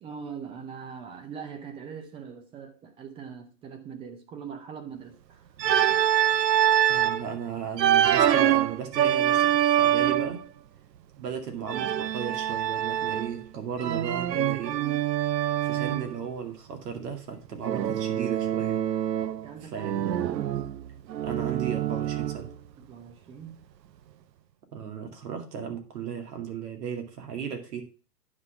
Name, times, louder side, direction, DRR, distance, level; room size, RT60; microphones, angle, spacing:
voice 1, 0.0-5.5 5.9-6.0 14.6-15.0 19.4-20.6 22.8-23.6, right 7 dB, 10° right, 0.6 m, -42 dB
Organ, 5.6-7.2 7.8-10.4 11.7-13.4 13.8-16.1 17.7-19.5 19.8-22.5, right 11 dB, 90° right, 0.7 m, -25 dB
voice 2, 6.9-10.4 11.2-14.8 15.6-18.8 19.6-20.1 21.2-22.5 24.7-27.8, right 7 dB, 70° right, 2.4 m, -35 dB
9.5 x 4.1 x 5.8 m
hypercardioid pair, 140°, 49 cm